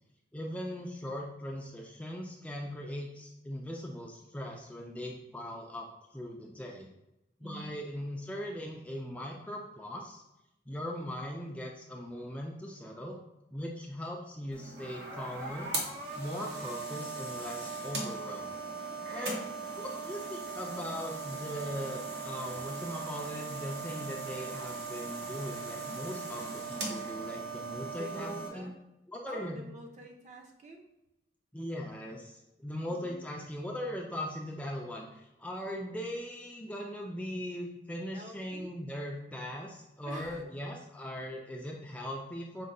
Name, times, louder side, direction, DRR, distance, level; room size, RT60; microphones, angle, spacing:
voice 1, 0.3-5.9 6.1-6.9 7.4-10.2 10.7-13.2 13.5-15.7 16.2-18.5 18.8-19.5 19.8-28.7 29.1-29.7 31.5-42.6, equal, 10° left, 0 dB, 0.3 m, -40 dB
sound 1, 14.5-28.5, right 4 dB, 70° right, 0.9 m, -39 dB
voice 2, 27.9-28.7 29.3-30.9 32.9-33.2 38.1-38.7 40.0-40.5, right 1 dB, 40° right, 1 dB, 0.6 m, -47 dB
5.2 x 2.2 x 3.7 m, 0.92 s
head